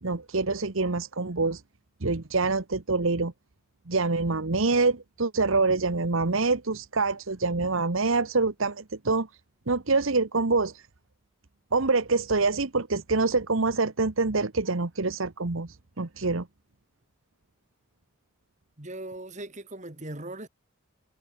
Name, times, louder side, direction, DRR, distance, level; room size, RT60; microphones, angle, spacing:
voice 1, 0.0-1.6 2.0-3.3 3.9-9.3 9.7-10.7 11.7-15.7 16.0-16.5, right 3 dB, 65° right, 1.2 m, -25 dB
voice 2, 18.8-20.5, right 1 dB, 35° right, 2.9 m, -39 dB
head